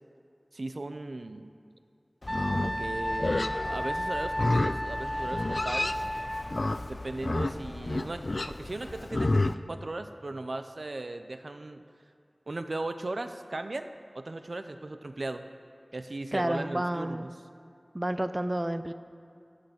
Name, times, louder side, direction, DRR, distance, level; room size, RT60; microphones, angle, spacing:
voice 1, 0.5-1.5 2.5-6.0 6.9-11.8 12.5-15.4 15.9-17.3, right 2 dB, 75° right, 9 dB, 0.6 m, -37 dB
Livestock farm animals working animals, 2.2-9.5, left 2 dB, 60° left, 0.4 m, -31 dB
Wind instrument woodwind instrument, 2.3-6.5, equal, 10° left, 1.0 m, -33 dB
voice 2, 16.3-17.3 17.9-18.9, right 1 dB, 25° right, 10 dB, 0.5 m, -30 dB
17.5 x 6.7 x 8.0 m, 2.5 s
wide cardioid pair, 55°, 0 cm